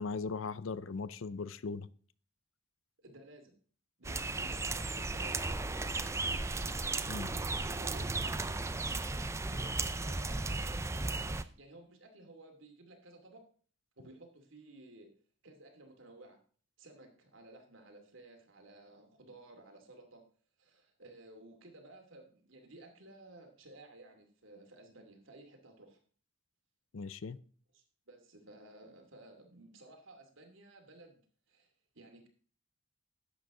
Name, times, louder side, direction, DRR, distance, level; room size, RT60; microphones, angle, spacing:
voice 1, 0.0-1.9 7.1-7.3 26.9-27.4, left 4 dB, 70° left, 0.5 m, -38 dB
voice 2, 3.0-3.5 4.0-6.4 7.3-8.6 9.4-13.4 14.0-15.1 15.4-16.4 16.8-20.2 20.6-26.0 27.7-31.2 31.5-31.7 31.9-32.3, right 1 dB, 70° right, 2.5 m, -55 dB
sound 1, 4.0-11.4, right 3 dB, 15° right, 0.4 m, -35 dB
11.5 x 7.9 x 3.7 m
head